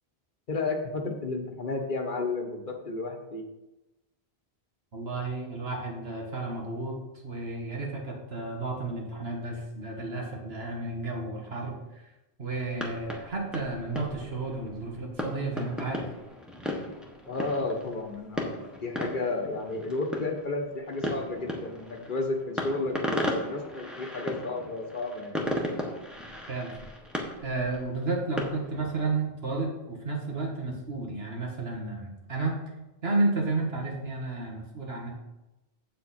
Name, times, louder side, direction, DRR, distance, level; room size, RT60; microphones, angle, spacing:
voice 1, 0.5-3.4 17.3-25.4, left 3 dB, 50° left, 3 dB, 1.3 m, -32 dB
voice 2, 4.9-7.0 7.2-11.8 12.4-16.1 26.5-26.7 27.4-32.6 33.0-35.1, right 3 dB, 70° right, 0 dB, 1.9 m, -32 dB
sound 1, 12.6-29.0, left 1 dB, ahead, 1.2 m, -36 dB
8.4 x 7.5 x 4.2 m, 0.99 s
omnidirectional pair, 1.1 m